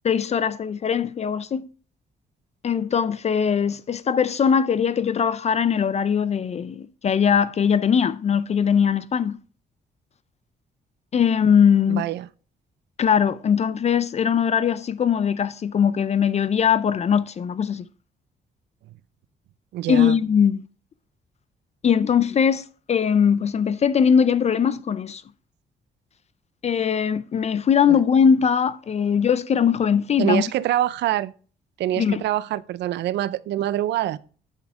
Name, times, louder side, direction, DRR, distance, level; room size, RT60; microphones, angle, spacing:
voice 1, 0.0-1.7 2.6-9.4 11.1-12.1 13.0-17.9 19.9-20.6 21.8-25.2 26.6-30.4 32.0-32.2, left 7 dB, 40° left, 0.4 m, -20 dB
voice 2, 11.9-12.3 19.7-20.2 27.9-28.0 30.2-31.3 31.8-34.2, right 13 dB, 85° right, 0.5 m, -25 dB
8.3 x 8.2 x 3.5 m
cardioid pair, 110°, 17 cm